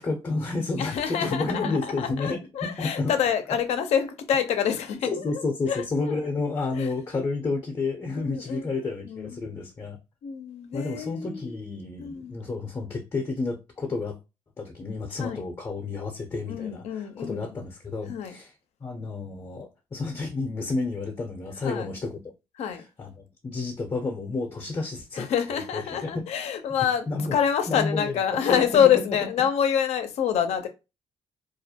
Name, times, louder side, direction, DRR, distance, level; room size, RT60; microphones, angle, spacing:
voice 1, 0.0-3.1 5.0-10.0 10.7-14.2 14.6-18.5 18.8-22.2 22.7-26.2 27.1-27.4 27.7-29.0, left 3 dB, 30° left, 0.6 m, -31 dB
voice 2, 0.8-6.3 6.7-6.9 8.2-8.7 9.0-9.4 10.2-11.6 12.0-12.4 15.2-15.4 16.5-17.5 18.1-18.4 21.6-21.9 22.6-22.8 25.2-27.1 27.3-30.7, left 8 dB, 75° left, 0.5 m, -26 dB
2.4 x 2.1 x 2.7 m
supercardioid pair, 70°, 11 cm